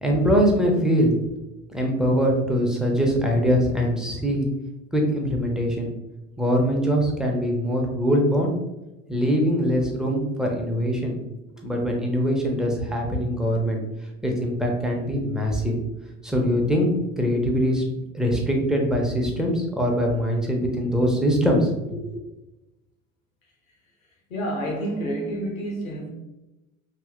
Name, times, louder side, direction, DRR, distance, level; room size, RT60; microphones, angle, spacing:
voice 1, 0.0-1.1 1.7-4.5 4.9-5.9 6.4-8.5 9.1-11.2 11.6-13.8 14.2-15.7 16.2-16.9 17.2-17.8 18.1-22.2, equal, ahead, 0 dB, 0.5 m, -22 dB
voice 2, 24.3-26.1, right 1 dB, 80° left, 0 dB, 0.8 m, -29 dB
2.8 x 2.8 x 2.4 m, 1.0 s
figure-of-eight pair, 60°, 40 cm